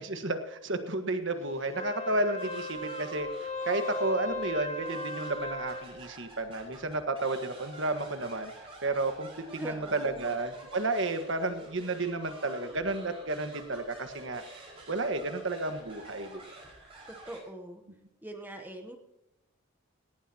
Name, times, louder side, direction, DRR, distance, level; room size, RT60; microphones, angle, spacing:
voice 1, 0.0-3.3 3.6-8.5 8.8-14.4 14.9-16.3, right 2 dB, 55° right, 7 dB, 1.5 m, -32 dB
Wind instrument woodwind instrument, 1.6-5.9, left 1 dB, 30° left, 2.0 m, -37 dB
sound 1, 2.4-17.4, right 2 dB, 25° right, 5.4 m, -50 dB
voice 2, 9.6-10.3 17.1-17.8 18.2-19.0, right 1 dB, 10° right, 4 dB, 1.0 m, -42 dB
18.0 x 17.5 x 2.9 m, 0.93 s
head